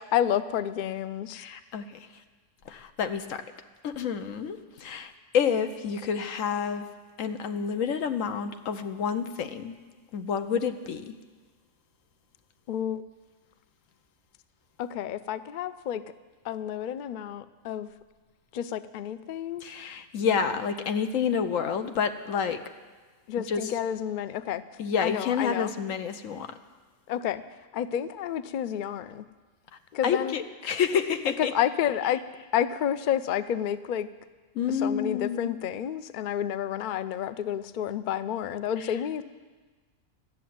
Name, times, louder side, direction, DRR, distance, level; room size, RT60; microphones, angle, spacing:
voice 1, 0.0-1.4 12.7-13.0 14.8-16.0 16.4-17.9 18.5-19.6 23.3-24.6 25.0-25.7 27.1-27.4 27.7-29.2 29.9-30.3 31.4-32.2 32.5-34.1 34.7-39.2, left 10 dB, 65° left, 14 dB, 0.5 m, -30 dB
voice 2, 1.3-2.0 2.7-3.4 3.8-6.9 7.2-9.8 10.1-11.2 19.6-22.6 23.5-23.6 24.8-26.5 30.0-31.5 34.5-35.6, left 7 dB, 85° left, 9 dB, 1.2 m, -29 dB
13.5 x 7.2 x 9.3 m, 1.4 s
omnidirectional pair, 1.3 m